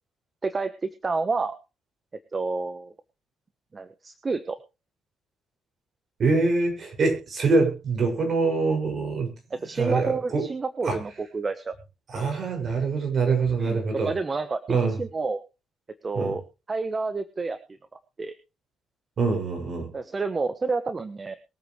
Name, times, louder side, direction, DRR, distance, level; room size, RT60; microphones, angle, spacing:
voice 1, 0.4-1.6 2.3-2.9 3.7-4.6 9.5-11.7 13.6-13.8 14.0-15.4 16.0-16.4 16.7-17.6 18.2-18.3 19.9-21.4, right 4 dB, 30° right, 11 dB, 1.1 m, -29 dB
voice 2, 6.2-9.3 9.7-10.4 10.8-11.0 12.1-14.1 14.7-14.9 16.1-16.3 19.2-19.9, right 4 dB, 50° right, 3 dB, 6.4 m, -24 dB
22.5 x 8.4 x 3.2 m, 0.30 s
cardioid pair, 90°, 0 cm